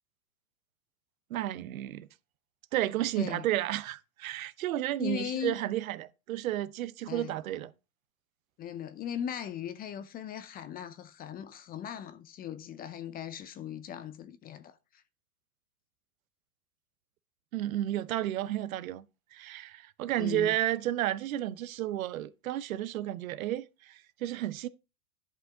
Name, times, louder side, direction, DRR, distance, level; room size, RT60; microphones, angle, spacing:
voice 1, 1.3-2.1 2.7-7.7 17.5-19.0 19.3-24.7, right 13 dB, 65° right, 0.8 m, -32 dB
voice 2, 3.2-3.5 5.0-5.6 7.1-7.4 8.6-15.0 20.2-20.5, left 9 dB, 20° left, 0.5 m, -39 dB
10.5 x 5.5 x 3.7 m
hypercardioid pair, 100°, 44 cm